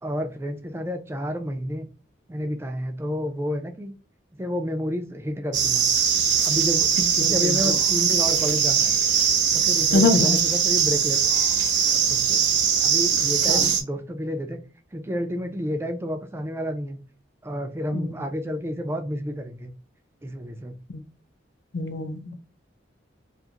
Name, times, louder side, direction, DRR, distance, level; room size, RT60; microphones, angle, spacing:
voice 1, 0.0-1.9 2.3-3.9 4.3-5.9 6.4-8.9 9.5-11.3 11.9-12.4 12.8-14.6 14.9-17.0 17.4-19.7 20.2-20.7, equal, 15° right, 6 dB, 0.3 m, -30 dB
sound 1, 5.5-13.8, right 7 dB, 65° right, 0.6 m, -21 dB
voice 2, 7.2-7.7 9.9-10.4 13.5-13.7 17.9-18.1 20.9-21.0 21.7-22.4, left 3 dB, 60° left, 8 dB, 0.5 m, -24 dB
2.5 x 2.4 x 2.8 m, 0.35 s
head